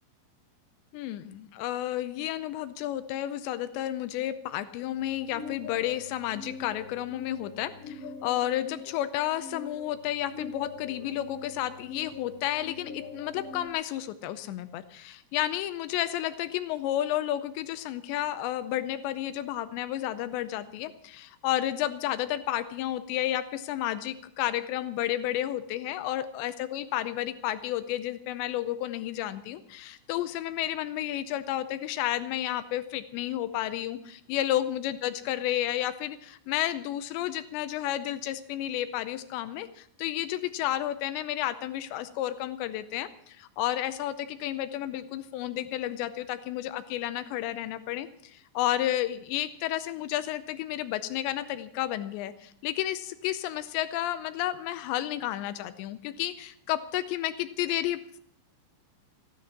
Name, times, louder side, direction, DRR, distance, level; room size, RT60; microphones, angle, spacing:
voice 1, 0.9-58.2, left 13 dB, 85° left, 12 dB, 2.6 m, -31 dB
sound 1, 5.0-13.7, left 4 dB, 55° left, 3.2 m, -43 dB
15.5 x 11.0 x 7.3 m, 0.67 s
omnidirectional pair, 5.8 m